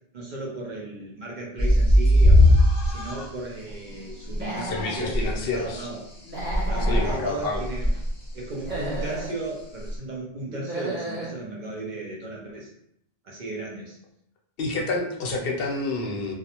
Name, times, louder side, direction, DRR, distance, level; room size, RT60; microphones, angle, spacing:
voice 1, 0.1-2.5 2.8-6.0 6.7-7.9 8.3-12.7 13.2-14.0, right 2 dB, 55° right, -2 dB, 0.6 m, -35 dB
sound 1, 1.6-3.3 4.3-4.4 4.8-4.9 5.1-5.6 6.4-7.1 7.5-8.1 8.7-9.2 9.9-10.0, left 1 dB, 30° left, 0.6 m, -19 dB
Human voice / Animal, 4.3-5.1 6.2-7.2 8.5-9.3 10.5-11.3, right 1 dB, 10° right, 0.7 m, -33 dB
voice 2, 4.6-5.9 6.9-7.7 14.6-16.3, left 3 dB, 70° left, 0 dB, 0.7 m, -29 dB
2.4 x 2.0 x 2.8 m, 0.74 s
omnidirectional pair, 1.0 m